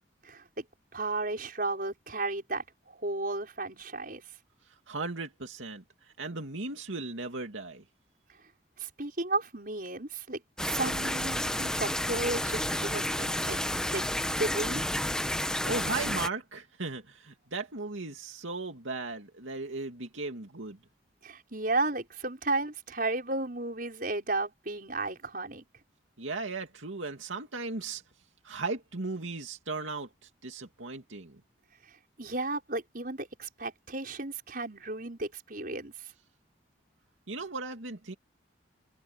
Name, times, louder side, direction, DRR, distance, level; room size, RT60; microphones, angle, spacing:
voice 1, 0.2-0.6 0.9-4.2 8.8-13.6 13.9-14.0 14.4-14.8 21.2-25.6 32.2-35.9, right 2 dB, 45° right, 6.0 m, -33 dB
voice 2, 4.7-7.8 15.6-20.8 26.2-28.0 28.4-31.4 37.3-38.1, right 3 dB, 85° right, 2.5 m, -37 dB
sound 1, 10.6-16.3, left 1 dB, 5° left, 1.1 m, -31 dB
head